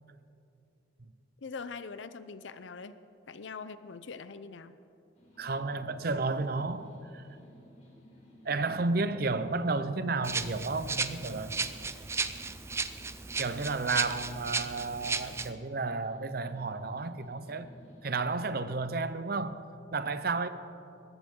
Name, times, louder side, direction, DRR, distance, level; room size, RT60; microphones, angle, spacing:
voice 1, 1.4-2.9 3.3-4.8, left 4 dB, 80° left, 0.6 m, -42 dB
sound 1, 5.1-18.4, equal, 40° left, 3.6 m, -57 dB
voice 2, 5.4-7.3 8.4-11.6 13.4-17.7 18.0-20.5, right 3 dB, 55° right, 0.6 m, -32 dB
Rattle (instrument), 10.2-15.5, right 4 dB, 15° right, 0.4 m, -35 dB
20.5 x 14.5 x 3.7 m
head